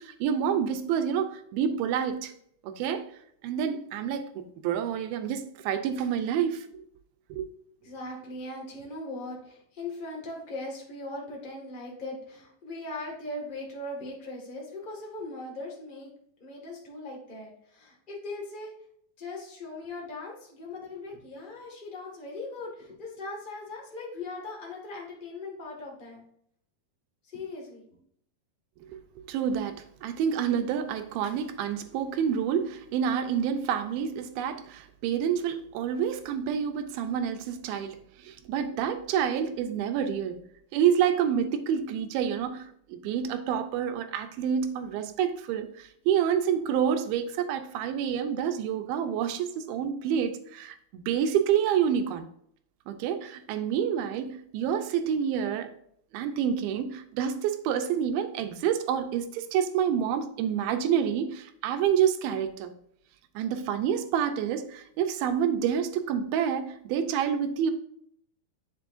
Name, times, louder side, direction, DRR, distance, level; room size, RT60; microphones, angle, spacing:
voice 1, 0.0-2.3 2.6-3.1 3.4-6.8 7.3-7.4 28.9-40.4 40.7-52.3 52.9-55.7 56.1-62.7 63.4-67.7, right 8 dB, 85° right, 2.6 m, -28 dB
voice 2, 7.8-16.1 16.4-18.7 19.2-26.2 27.2-28.0, left 2 dB, 25° left, 1.2 m, -39 dB
8.1 x 6.8 x 2.6 m
omnidirectional pair, 4.2 m